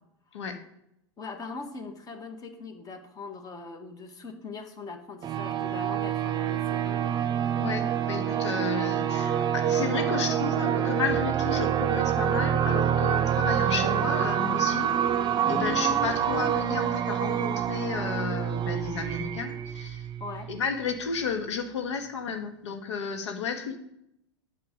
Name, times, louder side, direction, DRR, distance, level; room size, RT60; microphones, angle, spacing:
voice 1, 1.2-7.0 20.2-20.5, left 4 dB, 25° left, 6 dB, 1.7 m, -41 dB
sound 1, 5.2-20.6, right 9 dB, 30° right, 0.9 m, -27 dB
voice 2, 7.6-14.9 15.2-20.1 20.5-23.8, left 5 dB, 75° left, 5 dB, 1.6 m, -32 dB
8.7 x 6.6 x 5.3 m, 0.78 s
hypercardioid pair, 100°, 15 cm